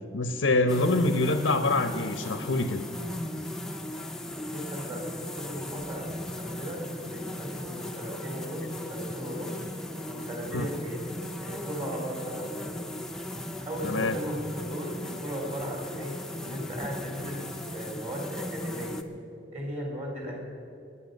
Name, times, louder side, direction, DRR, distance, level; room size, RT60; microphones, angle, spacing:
voice 1, 0.1-2.9 10.5-10.7 13.8-14.1, left 2 dB, 85° left, 9 dB, 0.9 m, -25 dB
sound 1, 0.7-19.0, left 1 dB, 5° left, 0.7 m, -37 dB
voice 2, 4.4-9.6 10.1-11.0 11.4-12.8 13.6-19.0 19.5-20.4, equal, 35° right, 1 dB, 3.2 m, -37 dB
23.5 x 10.0 x 5.3 m, 2.7 s
head